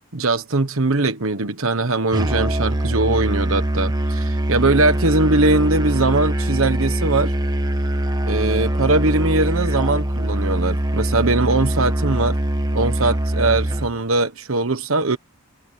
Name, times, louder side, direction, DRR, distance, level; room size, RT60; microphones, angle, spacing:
voice 1, 0.1-7.3 8.2-12.4 12.7-15.2, right 2 dB, 70° right, 1.3 m, -20 dB
Musical instrument, 2.1-14.0, right 1 dB, 20° right, 1.3 m, -22 dB
head